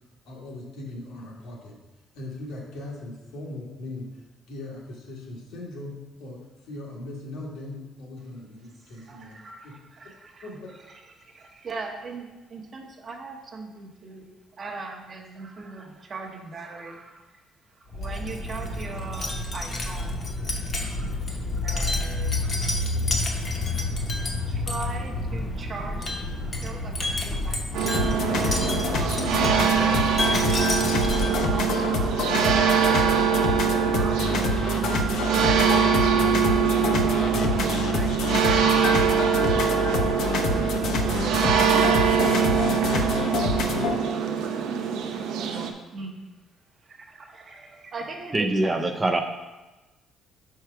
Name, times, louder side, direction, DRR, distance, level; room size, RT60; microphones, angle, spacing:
voice 1, 0.2-1.8 2.1-9.4 9.6-9.7 10.4-10.7, left 2 dB, 80° left, -2 dB, 1.6 m, -39 dB
voice 2, 8.6-10.5 10.8-36.0 36.7-43.7 45.1-46.2 46.8-48.7, right 3 dB, 30° right, 1 dB, 0.8 m, -41 dB
Wind chime, 17.9-31.6, left 2 dB, 30° left, 0.8 m, -29 dB
sound 1, 27.7-45.7, right 7 dB, 80° right, 0.6 m, -23 dB
sound 2, 27.9-43.9, left 4 dB, 65° left, 0.6 m, -27 dB
voice 3, 48.3-49.2, right 2 dB, 15° right, 4 dB, 0.4 m, -23 dB
5.9 x 4.6 x 4.5 m, 1.1 s
cardioid pair, 160°, 0 cm